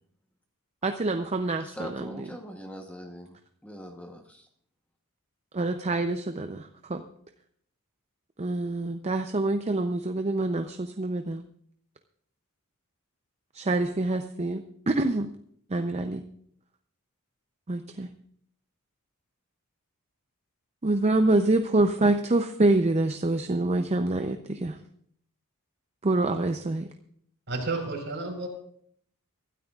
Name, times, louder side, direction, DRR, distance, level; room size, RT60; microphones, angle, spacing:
voice 1, 0.8-2.2 5.5-7.0 8.4-11.4 13.5-15.3 15.7-16.2 17.7-18.1 20.8-24.8 26.0-26.9, right 2 dB, 30° right, 7 dB, 0.6 m, -26 dB
voice 2, 1.6-4.5, equal, 5° left, 3 dB, 1.0 m, -42 dB
voice 3, 27.5-28.5, right 3 dB, 55° right, 2 dB, 4.2 m, -31 dB
24.0 x 12.5 x 2.4 m, 0.65 s
head